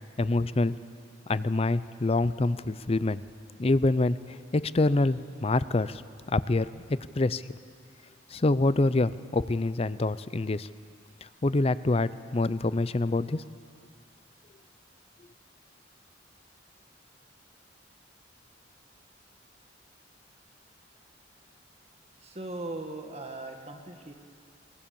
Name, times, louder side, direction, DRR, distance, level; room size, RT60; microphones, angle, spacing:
voice 1, 0.2-0.7 1.3-3.2 3.6-4.2 4.5-6.0 6.3-6.8 7.2-7.4 8.3-10.7 11.4-13.4, left 2 dB, 35° left, 15 dB, 0.5 m, -26 dB
voice 2, 22.2-24.1, right 2 dB, 35° right, 4 dB, 1.9 m, -39 dB
23.0 x 20.5 x 7.0 m, 2.2 s
head